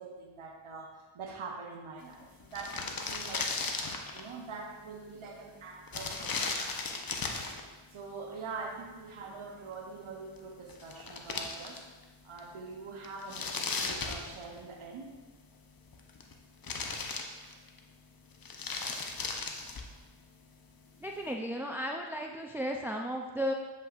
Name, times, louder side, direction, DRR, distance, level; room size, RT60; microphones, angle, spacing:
voice 1, 0.0-6.7 7.9-11.8 12.2-15.2, right 4 dB, 80° right, 1 dB, 0.9 m, -44 dB
sound 1, 2.1-2.2 2.4-4.3 5.9-7.6 10.4-10.5 10.7-12.0 12.4-12.5 13.0-14.8 15.8-16.3 16.6-17.8 18.3-20.0, left 4 dB, 45° left, 0.8 m, -36 dB
voice 2, 21.0-23.5, equal, 5° right, 2 dB, 0.4 m, -34 dB
7.7 x 5.4 x 2.5 m, 1.3 s
cardioid pair, 45°, 48 cm